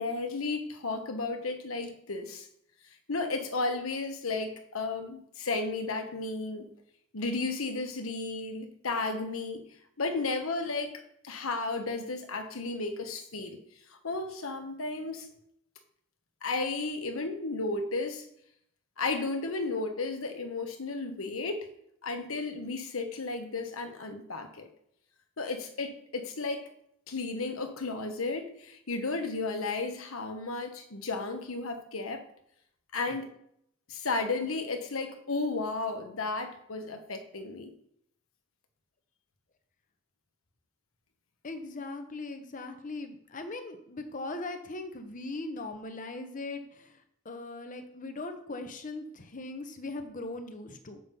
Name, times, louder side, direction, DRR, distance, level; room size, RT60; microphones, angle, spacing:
voice 1, 0.0-2.5 3.1-6.7 7.1-13.6 13.9-15.3 16.4-18.2 19.0-21.7 22.0-24.7 25.4-26.7 27.1-32.2 32.9-33.3 33.9-37.7, left 3 dB, 90° left, 6 dB, 1.2 m, -33 dB
voice 2, 41.4-51.0, left 2 dB, 40° left, 6 dB, 0.9 m, -39 dB
7.5 x 6.0 x 5.4 m, 0.72 s
head